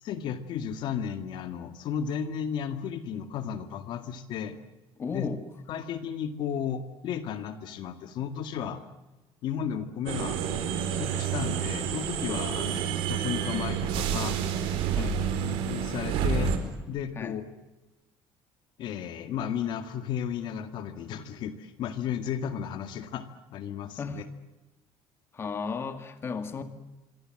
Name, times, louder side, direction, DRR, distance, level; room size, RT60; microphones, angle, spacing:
voice 1, 0.0-4.6 5.1-5.3 5.7-8.8 9.4-10.4 10.9-14.4 15.0-15.1 15.4-16.5 16.9-17.5 18.8-24.2, left 8 dB, 55° left, 9 dB, 1.9 m, -34 dB
voice 2, 5.0-5.4 15.0-15.2 17.2-17.4 24.0-24.3 25.3-26.6, left 5 dB, 25° left, 8 dB, 2.1 m, -34 dB
sound 1, 10.1-16.6, right 8 dB, 80° right, 4.7 m, -29 dB
26.0 x 24.5 x 7.8 m, 1.1 s
cardioid pair, 155°, 9 cm